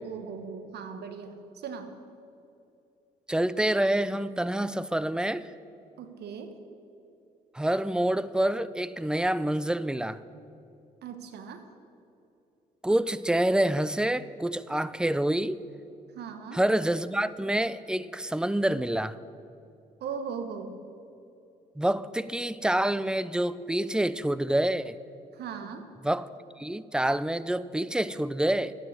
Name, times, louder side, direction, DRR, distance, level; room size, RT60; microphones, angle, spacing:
voice 1, 0.0-1.9 6.0-6.5 11.0-11.6 16.1-16.6 20.0-20.8 25.3-25.8, right 6 dB, 75° right, 1.4 m, -38 dB
voice 2, 3.3-5.5 7.5-10.2 12.8-15.6 16.5-19.2 21.8-25.0 26.0-26.3 26.6-28.7, right 1 dB, 5° right, 0.5 m, -27 dB
12.5 x 9.6 x 8.3 m
supercardioid pair, 55°, 17 cm